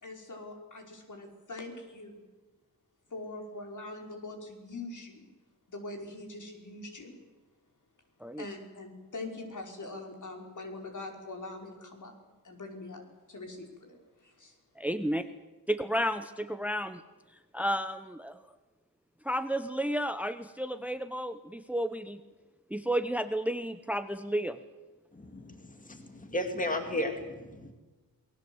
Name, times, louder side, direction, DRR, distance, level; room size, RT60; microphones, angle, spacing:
voice 1, 0.0-2.2 3.1-5.3 5.7-7.2 8.4-12.1 12.4-13.0 13.3-14.6, left 2 dB, 55° left, 3 dB, 5.3 m, -43 dB
voice 2, 14.8-15.2 15.7-17.0 17.5-18.4 19.2-22.2 22.7-24.6, equal, 5° right, 11 dB, 0.9 m, -32 dB
voice 3, 25.1-27.7, left 1 dB, 20° left, 5 dB, 2.4 m, -34 dB
28.0 x 20.5 x 8.0 m, 1.2 s
wide cardioid pair, 150°, 35 cm